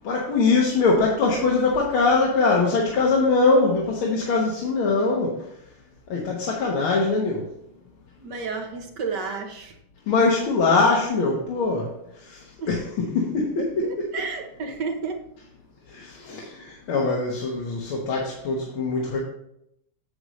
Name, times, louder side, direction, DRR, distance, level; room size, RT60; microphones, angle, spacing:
voice 1, 0.0-5.4 6.1-7.4 10.1-11.9 12.3-12.4 12.7-13.9 15.9-19.2, left 3 dB, 70° left, -2 dB, 2.0 m, -22 dB
voice 2, 8.2-9.8 12.6-12.7 13.6-15.3, right 4 dB, 60° right, 3 dB, 1.5 m, -32 dB
8.0 x 7.9 x 3.1 m, 0.77 s
omnidirectional pair, 2.4 m